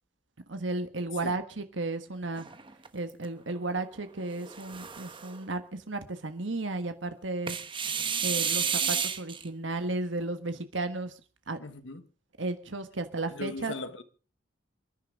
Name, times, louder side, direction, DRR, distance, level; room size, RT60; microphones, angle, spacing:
voice 1, 0.5-2.5 2.9-7.6 8.2-11.1 11.5-11.6 12.4-13.7, right 2 dB, 85° right, 1.5 m, -34 dB
sound 1, 2.4-3.3 4.3-5.4 7.5-9.4, right 7 dB, 25° right, 1.1 m, -31 dB
voice 2, 11.6-12.0 13.3-14.0, left 2 dB, 85° left, 1.4 m, -39 dB
28.0 x 10.5 x 3.7 m
head